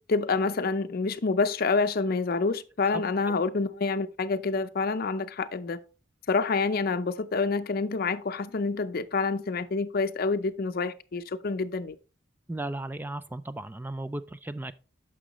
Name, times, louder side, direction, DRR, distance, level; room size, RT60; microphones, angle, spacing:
voice 1, 0.1-5.8 6.3-11.9, left 4 dB, 55° left, 0.6 m, -27 dB
voice 2, 12.5-14.7, right 1 dB, 10° right, 0.3 m, -35 dB
10.0 x 6.1 x 3.0 m
head